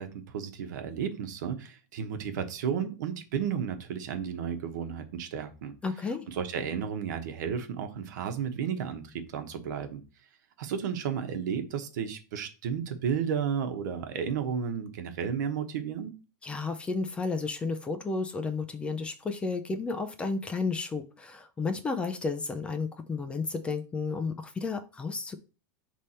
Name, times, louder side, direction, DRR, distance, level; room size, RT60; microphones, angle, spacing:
voice 1, 0.0-5.7 6.3-10.0 10.6-16.1, right 7 dB, 70° right, 1.2 m, -33 dB
voice 2, 5.8-6.3 16.4-25.3, left 4 dB, 10° left, 0.4 m, -32 dB
6.5 x 3.4 x 4.3 m
supercardioid pair, 160°, 10 cm